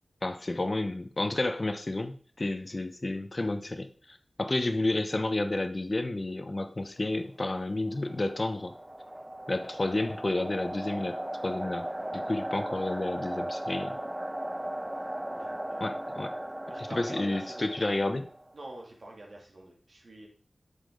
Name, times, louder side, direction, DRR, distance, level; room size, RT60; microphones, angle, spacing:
voice 1, 0.2-8.7 9.5-11.1 11.4-11.8 12.1-14.0 15.8-16.3 16.9-18.2, left 2 dB, 45° left, 8 dB, 1.0 m, -31 dB
sound 1, 7.7-18.6, right 1 dB, 15° right, 0.5 m, -37 dB
voice 2, 15.3-15.9 16.7-17.9 18.5-20.3, right 1 dB, 70° right, -1 dB, 2.7 m, -45 dB
8.4 x 7.3 x 4.0 m, 0.43 s
cardioid pair, 45°, 0 cm